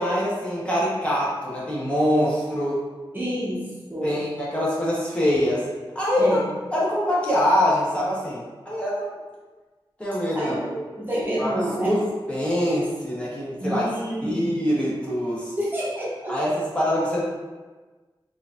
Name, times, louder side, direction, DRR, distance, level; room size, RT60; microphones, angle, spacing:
voice 1, 0.0-2.8 4.0-5.6 5.9-6.4 6.7-9.1 10.0-10.5 11.4-13.8 14.2-15.5 16.3-17.2, equal, 15° left, -7 dB, 1.0 m, -24 dB
voice 2, 3.1-3.6 3.9-4.2 6.2-6.5 10.3-11.9 13.6-14.5 15.6-16.4, right 1 dB, 25° right, -7 dB, 0.8 m, -28 dB
4.5 x 2.5 x 2.5 m, 1.3 s
wide cardioid pair, 120°, 9 cm